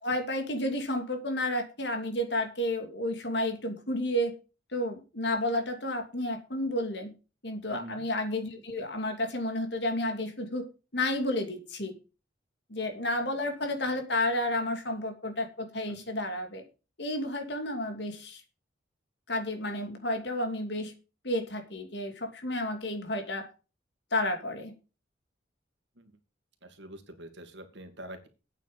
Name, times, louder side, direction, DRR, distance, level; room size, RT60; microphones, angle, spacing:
voice 1, 0.0-4.3 4.7-7.1 7.4-10.6 10.9-11.9 12.7-16.6 17.0-18.4 19.3-20.9 21.2-23.5 24.1-24.7, left 1 dB, 60° left, 5 dB, 2.6 m, -31 dB
voice 2, 7.7-8.1 15.9-16.0 26.0-26.1 26.6-28.3, right 1 dB, 65° right, 7 dB, 2.3 m, -45 dB
8.9 x 7.4 x 7.1 m, 0.33 s
head